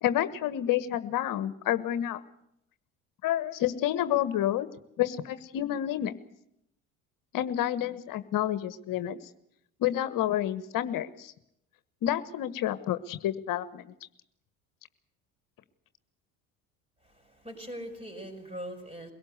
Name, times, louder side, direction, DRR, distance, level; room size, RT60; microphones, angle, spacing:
voice 1, 0.0-2.2 3.2-4.7 5.0-6.1 7.3-9.2 9.8-11.3 12.0-13.9, left 12 dB, 55° left, 13 dB, 1.4 m, -29 dB
voice 2, 17.0-19.1, equal, 15° right, 5 dB, 6.5 m, -41 dB
23.0 x 18.0 x 8.0 m, 0.76 s
hypercardioid pair, 70°, 40 cm